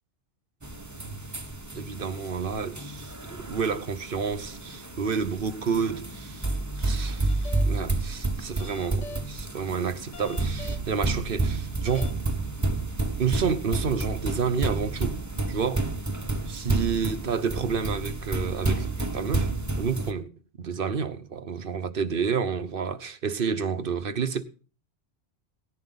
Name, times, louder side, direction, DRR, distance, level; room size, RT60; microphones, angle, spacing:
sound 1, 0.6-20.1, right 2 dB, 15° right, 1.0 m, -30 dB
voice 1, 1.8-12.1 13.2-15.2 15.5-15.9 16.5-20.3 20.6-24.4, right 6 dB, 50° right, 1.0 m, -30 dB
sound 2, 7.3-7.9 8.4-9.4 9.9-10.9 11.4-11.5 11.9-12.4, left 4 dB, 85° left, 1.5 m, -43 dB
18.5 x 11.0 x 3.9 m
omnidirectional pair, 1.2 m